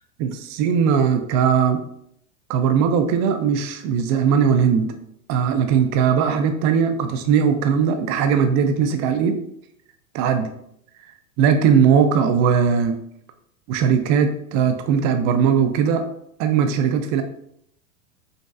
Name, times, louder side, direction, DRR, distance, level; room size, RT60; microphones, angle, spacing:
voice 1, 0.2-1.8 2.5-4.9 5.3-9.4 10.1-10.5 11.4-13.0 13.7-16.0 16.4-17.2, right 7 dB, 40° right, 7 dB, 0.5 m, -19 dB
5.2 x 3.0 x 2.4 m, 0.72 s
hypercardioid pair, 105°, 41 cm